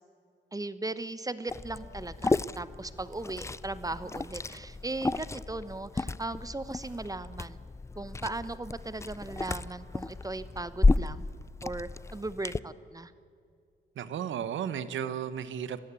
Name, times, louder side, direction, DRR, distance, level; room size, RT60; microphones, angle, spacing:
voice 1, 0.5-7.6 8.0-11.2 11.6-13.1, right 2 dB, 20° right, 14 dB, 1.0 m, -37 dB
Liquid, 1.5-12.6, left 3 dB, 15° left, 0.4 m, -32 dB
voice 2, 14.0-15.8, right 9 dB, 80° right, 13 dB, 1.2 m, -34 dB
22.5 x 15.0 x 8.4 m, 2.4 s
cardioid pair, 80°, 19 cm